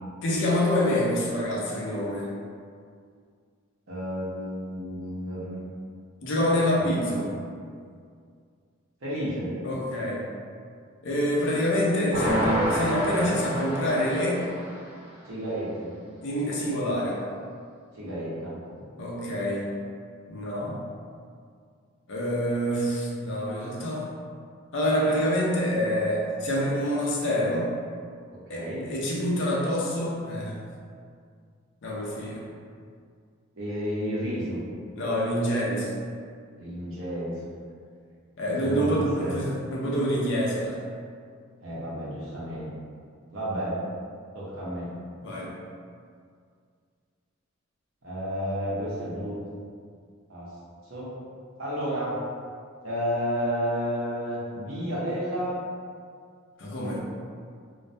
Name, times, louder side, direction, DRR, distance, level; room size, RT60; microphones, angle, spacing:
voice 1, 0.2-2.3 6.2-7.3 9.6-10.2 11.0-14.4 16.2-17.2 19.0-19.7 20.3-20.8 22.1-24.1 24.7-27.7 28.5-30.6 31.8-32.5 34.9-35.9 38.4-40.8 45.2-45.5 56.6-57.0, equal, 60° left, -4 dB, 0.5 m, -26 dB
voice 2, 3.9-5.6 6.8-7.3 9.0-9.5 15.2-15.9 17.9-18.6 28.3-28.9 33.6-34.6 36.6-37.5 38.6-39.4 41.6-42.7 43.3-43.8 44.3-44.9 48.0-49.3 50.3-50.5 50.8-51.1 51.6-52.2 52.8-55.6, equal, 65° right, -8 dB, 0.8 m, -31 dB
sound 1, 12.1-14.9, equal, 5° right, 0.8 m, -28 dB
2.2 x 2.1 x 2.6 m, 2.1 s
head